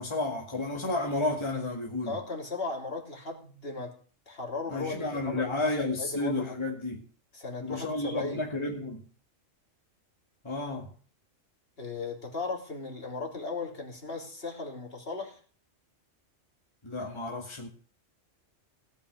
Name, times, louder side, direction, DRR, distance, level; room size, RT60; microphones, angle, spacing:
voice 1, 0.0-2.2 4.7-7.0 7.6-9.0 10.4-10.9 16.8-17.7, left 2 dB, 20° left, 2.2 m, -31 dB
voice 2, 2.0-4.0 4.3-5.5 6.0-6.5 7.3-8.4 11.8-15.4, left 3 dB, 50° left, 3.4 m, -36 dB
17.0 x 6.1 x 9.5 m
omnidirectional pair, 1.3 m